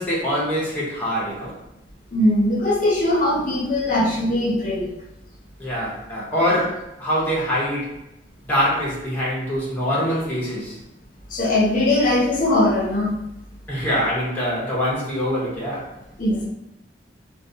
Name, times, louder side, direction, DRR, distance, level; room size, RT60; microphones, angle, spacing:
voice 1, 0.0-1.6 5.6-7.9 8.5-10.8 13.7-15.9, equal, 10° left, -6 dB, 0.7 m, -24 dB
voice 2, 2.1-4.9 11.3-13.1 16.2-16.4, left 1 dB, 45° left, -4 dB, 0.6 m, -20 dB
2.3 x 2.2 x 2.6 m, 0.86 s
head